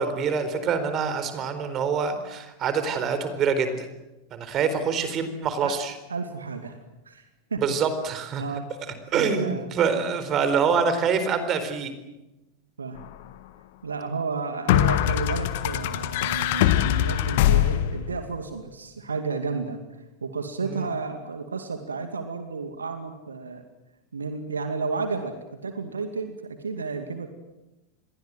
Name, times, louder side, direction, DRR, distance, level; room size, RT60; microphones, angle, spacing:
voice 1, 0.0-3.9 4.3-5.9 7.6-8.4 9.1-11.9 20.6-20.9, right 6 dB, 30° right, 10 dB, 4.2 m, -25 dB
voice 2, 6.1-6.8 7.1-7.2 7.5-7.6 8.4-8.7 9.1-9.7 12.8-13.0 13.8-19.8 20.2-23.6 24.1-25.3 25.6-27.3, right 4 dB, 75° right, 7 dB, 2.3 m, -32 dB
sound 1, 13.0-13.1 14.7-18.2, left 13 dB, 50° left, 1.5 m, -22 dB
28.5 x 22.0 x 7.9 m, 1.0 s
figure-of-eight pair, 90°, 0 cm